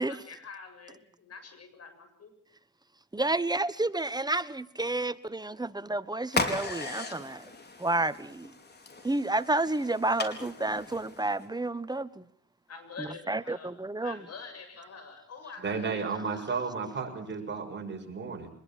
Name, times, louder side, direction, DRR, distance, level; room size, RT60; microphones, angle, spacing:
voice 1, 0.1-2.3 12.7-13.7 14.0-16.5, left 4 dB, 55° left, 7.5 m, -46 dB
voice 2, 3.1-7.4 7.8-8.5 9.0-12.2 13.0-14.2, right 2 dB, 15° right, 1.2 m, -30 dB
sound 1, 6.3-11.5, left 3 dB, 35° left, 4.6 m, -36 dB
voice 3, 15.6-18.5, right 5 dB, 35° right, 6.7 m, -33 dB
24.5 x 21.0 x 7.4 m
cardioid pair, 90°, 30 cm